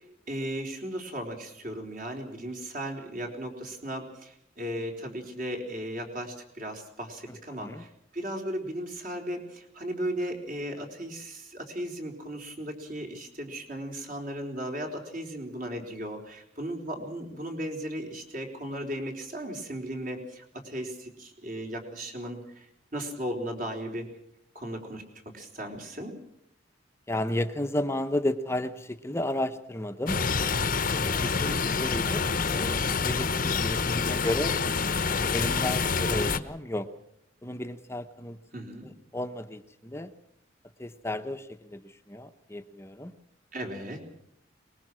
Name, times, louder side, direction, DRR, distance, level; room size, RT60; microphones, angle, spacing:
voice 1, 0.3-22.7 22.9-24.1 24.5-25.0 25.3-26.1 31.2-31.6 38.5-38.9 43.5-44.0, right 1 dB, 45° right, 2 dB, 4.0 m, -36 dB
voice 2, 7.3-7.8 27.1-30.2 30.9-31.5 31.8-34.5 35.3-36.9 37.4-38.4 38.8-40.1 40.8-43.1, left 1 dB, 15° left, 8 dB, 0.9 m, -33 dB
sound 1, 30.1-36.4, left 5 dB, 45° left, 0.9 m, -27 dB
23.0 x 21.0 x 6.2 m, 0.75 s
head